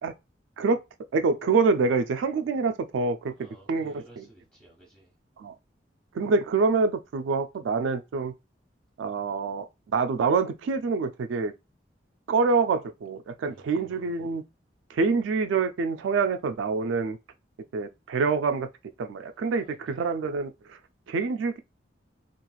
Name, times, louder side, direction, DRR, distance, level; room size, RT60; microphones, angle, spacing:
voice 1, 1.1-3.3 3.7-4.3 5.4-5.5 6.1-8.3 9.0-11.5 12.3-14.4 14.9-17.2 17.7-18.7 19.0-20.8 21.1-21.6, right 4 dB, 80° right, 0.3 m, -26 dB
voice 2, 3.3-5.1 13.5-14.4 19.5-20.0, right 1 dB, 5° left, 1.2 m, -54 dB
3.0 x 2.4 x 2.3 m
head